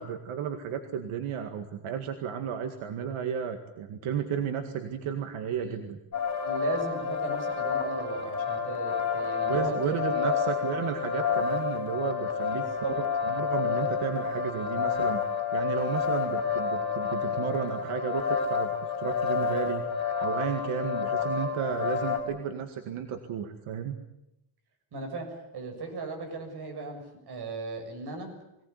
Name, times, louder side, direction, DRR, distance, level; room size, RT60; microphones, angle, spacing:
voice 1, 0.0-6.0 9.4-12.7 13.0-15.2 15.5-19.9 20.2-24.0, right 8 dB, 80° right, 6 dB, 2.1 m, -33 dB
sound 1, 6.1-22.2, left 6 dB, 35° left, 5.4 m, -29 dB
voice 2, 6.4-10.3 12.5-12.9 24.9-25.3 25.5-28.3, right 4 dB, 50° right, 4 dB, 7.2 m, -36 dB
23.0 x 18.0 x 9.7 m, 0.86 s
cardioid pair, 150°, 49 cm